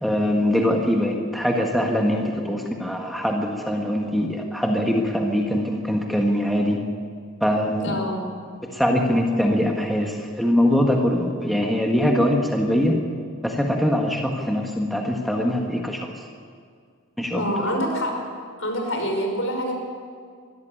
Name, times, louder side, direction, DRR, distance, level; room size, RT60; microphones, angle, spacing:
voice 1, 0.0-6.8 7.4-8.0 8.6-12.9 13.4-16.1 17.2-17.4, equal, ahead, 0 dB, 1.5 m, -22 dB
voice 2, 7.8-8.2 17.3-18.1 18.6-19.7, equal, 70° left, 2 dB, 5.2 m, -26 dB
22.5 x 13.5 x 9.1 m, 2.1 s
head